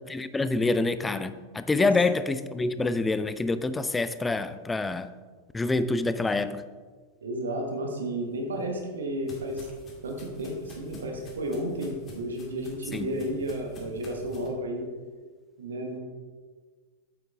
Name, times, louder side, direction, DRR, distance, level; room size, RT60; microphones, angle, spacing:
voice 1, 0.0-5.1 5.5-6.6 12.9-13.2, left 3 dB, 10° left, 0.4 m, -26 dB
voice 2, 7.2-9.7 10.0-14.9 15.6-16.0, right 1 dB, 65° right, 1.3 m, -32 dB
sound 1, 8.4-14.5, left 3 dB, 30° left, 2.1 m, -47 dB
8.5 x 8.0 x 3.5 m
figure-of-eight pair, 90°, 0 cm